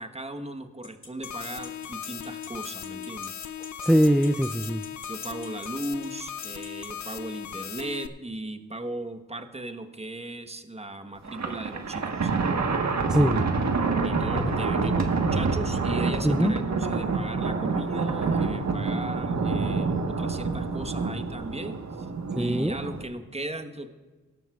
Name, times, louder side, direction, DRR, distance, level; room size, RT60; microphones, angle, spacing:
voice 1, 0.0-3.3 5.1-12.3 14.0-22.1 22.3-23.9, right 1 dB, 20° right, 7 dB, 1.2 m, -37 dB
sound 1, 0.8-6.9, left 3 dB, 40° left, 2.2 m, -43 dB
sound 2, 1.2-8.1, left 9 dB, 65° left, 0.6 m, -38 dB
voice 2, 3.8-4.8 13.1-13.4 16.2-16.5 22.4-22.8, equal, ahead, 9 dB, 0.4 m, -22 dB
Thunder, 11.2-23.0, right 4 dB, 60° right, 1.3 m, -27 dB
17.5 x 12.0 x 2.4 m, 1.3 s
supercardioid pair, 45°, 31 cm